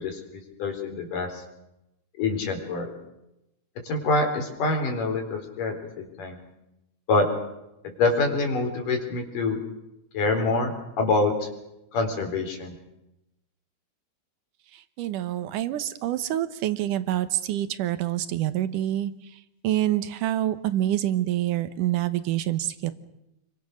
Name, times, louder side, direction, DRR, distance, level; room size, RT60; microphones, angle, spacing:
voice 1, 0.0-1.4 2.2-2.9 3.8-6.4 7.1-7.3 7.8-9.6 10.1-11.5 11.9-12.8, left 3 dB, 65° left, 3 dB, 5.6 m, -26 dB
voice 2, 14.7-22.9, right 13 dB, 70° right, 12 dB, 2.6 m, -27 dB
28.5 x 23.5 x 6.5 m, 0.88 s
omnidirectional pair, 4.0 m